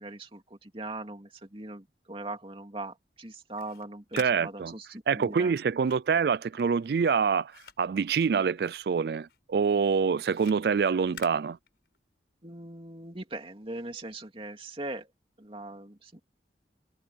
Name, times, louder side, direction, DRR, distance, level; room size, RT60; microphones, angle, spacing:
voice 1, 0.0-5.6 12.4-15.1 15.4-16.2, right 2 dB, 30° right, 2.7 m, -40 dB
sound 1, 3.4-8.9 9.2-12.2, left 7 dB, 70° left, 4.9 m, -51 dB
voice 2, 4.1-4.7 5.1-7.5 7.8-11.6, right 6 dB, 60° right, 0.3 m, -26 dB
head